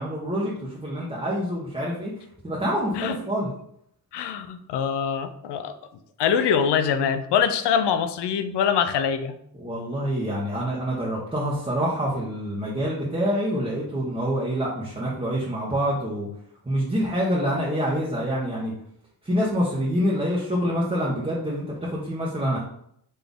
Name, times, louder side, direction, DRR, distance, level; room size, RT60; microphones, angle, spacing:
voice 1, 0.0-2.1 2.4-3.5 9.6-16.3 16.6-18.7 19.2-22.6, equal, 15° right, -7 dB, 1.3 m, -26 dB
voice 2, 4.1-5.7 6.2-9.4, left 7 dB, 90° left, 10 dB, 0.6 m, -24 dB
4.1 x 3.4 x 3.6 m, 0.69 s
cardioid pair, 80°, 40 cm